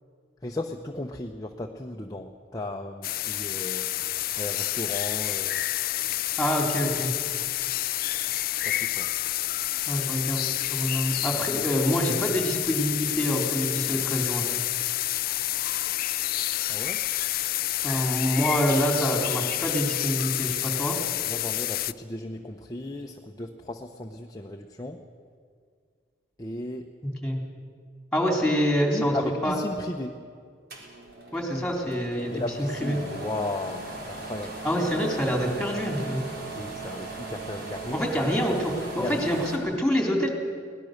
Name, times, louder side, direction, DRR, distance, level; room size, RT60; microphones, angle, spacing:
voice 1, 0.4-3.9 4.4-5.6 8.6-9.1 16.7-17.0 21.3-25.0 26.4-26.9 28.9-30.2 32.3-34.5 36.5-38.1 39.0-39.3, left 2 dB, 20° left, 2 dB, 0.9 m, -35 dB
sound 1, 3.0-21.9, left 15 dB, 55° left, 0.4 m, -29 dB
voice 2, 6.4-7.1 9.9-14.5 17.8-21.0 27.0-27.4 28.1-29.2 29.4-29.6 31.3-33.0 34.6-36.3 37.9-40.3, equal, 5° left, 1 dB, 3.5 m, -26 dB
sound 2, 30.7-39.6, right 3 dB, 60° right, 4.0 m, -38 dB
23.0 x 18.5 x 6.6 m, 2.1 s
head